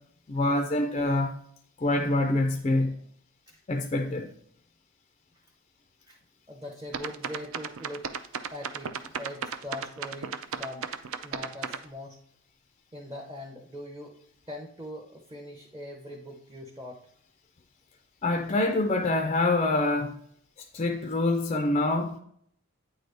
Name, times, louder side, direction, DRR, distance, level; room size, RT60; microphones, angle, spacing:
voice 1, 0.3-1.3 1.8-2.9 3.7-4.3 18.2-20.2 20.7-22.2, left 2 dB, 30° left, 0.4 m, -25 dB
voice 2, 6.5-8.1 8.5-10.9 11.2-12.2 12.9-14.1 14.5-17.0, left 1 dB, 15° right, 0.6 m, -41 dB
sound 1, 6.9-11.8, right 7 dB, 65° right, 0.4 m, -34 dB
8.8 x 3.9 x 3.4 m
head